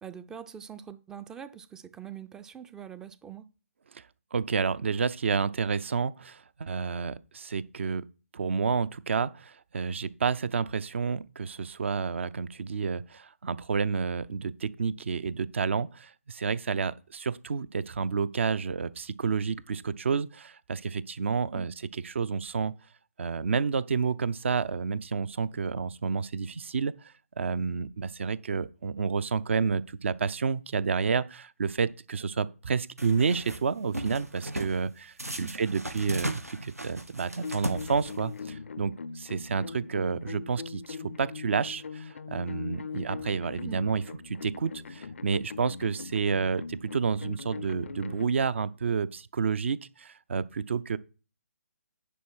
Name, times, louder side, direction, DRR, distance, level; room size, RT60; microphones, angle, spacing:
voice 1, 0.0-3.5 21.5-21.7 35.3-35.5 43.7-43.8, right 9 dB, 5° right, 0.4 m, -43 dB
voice 2, 4.3-8.1 8.3-22.7 23.2-26.9 27.4-51.0, right 5 dB, 55° right, 0.6 m, -30 dB
sound 1, 33.0-33.6 33.9-34.8 35.2-38.4, right 1 dB, 90° right, 1.6 m, -36 dB
sound 2, 37.4-48.3, left 5 dB, 60° left, 0.5 m, -41 dB
10.0 x 4.4 x 6.2 m
figure-of-eight pair, 140°, 8 cm